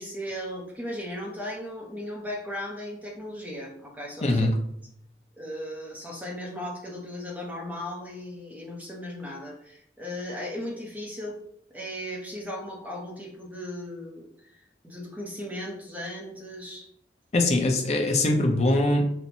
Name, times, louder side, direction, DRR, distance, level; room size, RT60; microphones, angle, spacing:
voice 1, 0.0-4.5 5.4-11.4 11.7-14.5 14.8-16.9, left 1 dB, 10° right, -2 dB, 0.6 m, -36 dB
voice 2, 4.2-4.5 17.3-19.1, left 2 dB, 35° left, 2 dB, 0.5 m, -22 dB
4.3 x 2.1 x 2.6 m, 0.71 s
head